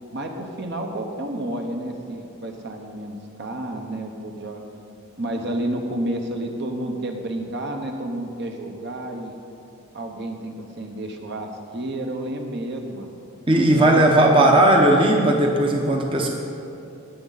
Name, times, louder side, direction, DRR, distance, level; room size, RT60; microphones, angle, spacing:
voice 1, 0.1-4.6 5.2-9.3 9.9-13.1 13.7-14.0 14.3-14.6, right 1 dB, 50° right, 3 dB, 1.0 m, -30 dB
voice 2, 13.5-16.3, right 1 dB, 25° right, 1 dB, 0.8 m, -16 dB
19.0 x 7.4 x 4.0 m, 2.7 s
head